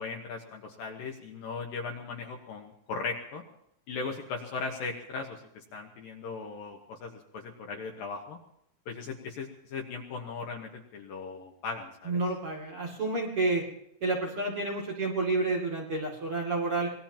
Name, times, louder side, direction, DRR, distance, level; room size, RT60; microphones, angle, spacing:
voice 1, 0.0-3.4 3.9-8.4 8.9-12.2, left 4 dB, 70° left, 2 dB, 2.2 m, -38 dB
voice 2, 12.1-13.6 14.0-16.9, right 3 dB, 35° right, -2 dB, 2.4 m, -29 dB
25.0 x 19.0 x 2.9 m, 0.74 s
omnidirectional pair, 5.9 m